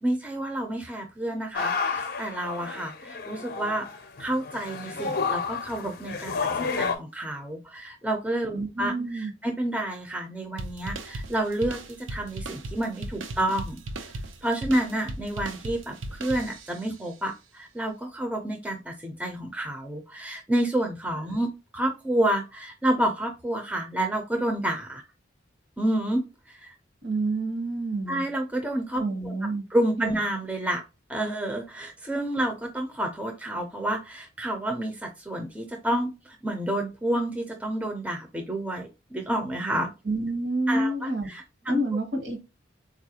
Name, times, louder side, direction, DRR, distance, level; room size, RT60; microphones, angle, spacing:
voice 1, 0.0-3.9 4.2-13.8 14.4-25.0 25.8-26.7 28.1-29.3 29.7-30.8 31.1-39.9 40.7-41.8, right 1 dB, 10° right, 0.5 m, -29 dB
sound 1, 1.5-7.0, left 5 dB, 50° left, 0.5 m, -31 dB
voice 2, 8.5-9.3 27.0-28.2 29.0-29.6 30.0-30.2 40.1-41.3 41.7-42.4, right 2 dB, 60° right, 1.0 m, -28 dB
sound 2, 10.6-16.9, right 2 dB, 85° right, 0.6 m, -37 dB
4.2 x 2.4 x 2.8 m
head